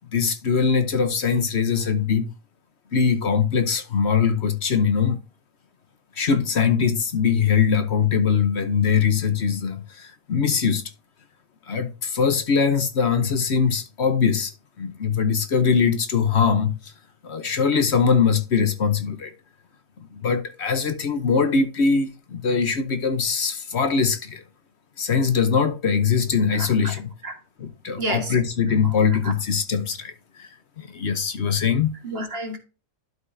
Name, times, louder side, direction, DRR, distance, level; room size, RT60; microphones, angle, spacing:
voice 1, 0.1-2.3 2.9-5.2 6.2-10.8 11.7-14.5 14.8-16.9 17.2-19.3 20.1-24.4 25.0-27.1 27.6-30.1 30.4-30.5 30.8-32.0, left 6 dB, 60° left, 1.2 m, -22 dB
voice 2, 26.5-26.9 27.2-27.3 28.0-28.4 28.8-28.9 29.2-29.3 32.0-32.6, right 1 dB, 50° right, 1.8 m, -30 dB
12.0 x 5.3 x 2.7 m
omnidirectional pair, 1.3 m